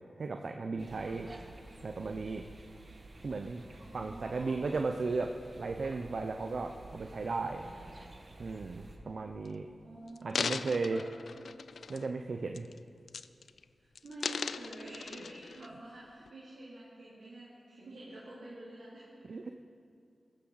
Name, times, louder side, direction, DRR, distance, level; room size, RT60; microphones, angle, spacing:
voice 1, 0.2-1.3 1.8-2.4 3.2-3.6 3.9-7.6 8.4-9.7 10.2-11.0 11.9-12.7 19.3-19.5, right 3 dB, 65° right, 5 dB, 0.6 m, -35 dB
sound 1, 0.8-9.0, right 2 dB, 50° right, 1.6 m, -51 dB
voice 2, 3.8-4.9 9.8-11.2 13.8-19.3, right 2 dB, 90° right, -9 dB, 2.8 m, -48 dB
sound 2, 9.1-9.5 10.1-12.2 12.5-12.8 13.1-13.6 14.0-15.7 16.3-16.4, left 5 dB, 80° left, 0.3 m, -38 dB
15.5 x 13.0 x 4.0 m, 2.4 s
cardioid pair, 55°, 0 cm